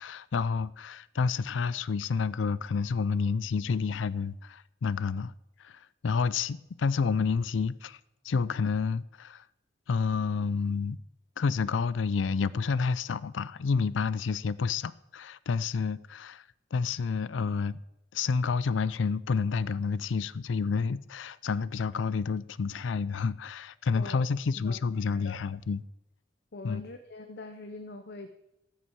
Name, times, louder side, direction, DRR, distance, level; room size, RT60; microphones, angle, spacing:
voice 1, 0.0-5.3 5.6-8.0 8.2-9.4 9.9-11.0 11.4-16.4 16.7-17.8 18.1-25.8 26.6-26.8, left 5 dB, 85° left, 0.4 m, -29 dB
voice 2, 23.9-24.2 24.5-25.4 26.5-28.3, left 2 dB, 60° left, 0.8 m, -43 dB
14.0 x 6.2 x 8.0 m
head